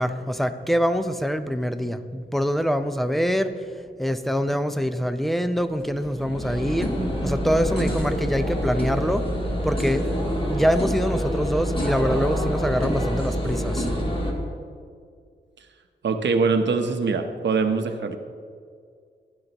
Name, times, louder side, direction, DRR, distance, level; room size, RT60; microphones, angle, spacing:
voice 1, 0.0-6.9 7.2-10.2 10.5-13.9, equal, ahead, 10 dB, 0.5 m, -25 dB
sound 1, 5.6-14.3, equal, 25° left, 1.7 m, -26 dB
voice 2, 16.0-18.2, right 4 dB, 65° right, 6 dB, 0.9 m, -23 dB
15.0 x 11.0 x 3.0 m, 2.1 s
wide cardioid pair, 130°, 19 cm